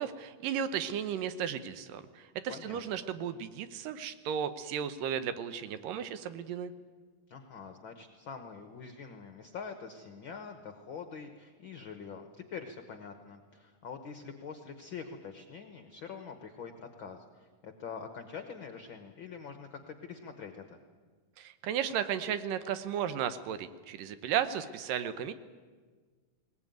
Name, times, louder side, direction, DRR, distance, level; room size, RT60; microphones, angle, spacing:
voice 1, 0.0-6.7 21.4-25.3, right 9 dB, 80° right, 12 dB, 2.6 m, -34 dB
voice 2, 2.5-2.8 7.3-20.8, left 6 dB, 60° left, 7 dB, 1.2 m, -45 dB
20.5 x 19.0 x 9.2 m, 1.5 s
omnidirectional pair, 3.8 m